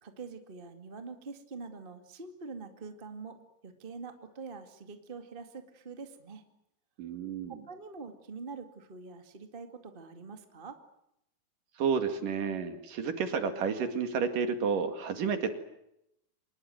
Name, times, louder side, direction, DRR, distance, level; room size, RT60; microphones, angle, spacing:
voice 1, 0.0-6.4 7.5-10.8, right 4 dB, 20° right, 7 dB, 1.5 m, -45 dB
voice 2, 7.0-7.6 11.8-15.5, right 6 dB, 60° right, 8 dB, 3.6 m, -31 dB
25.5 x 21.0 x 9.4 m, 0.82 s
omnidirectional pair, 4.5 m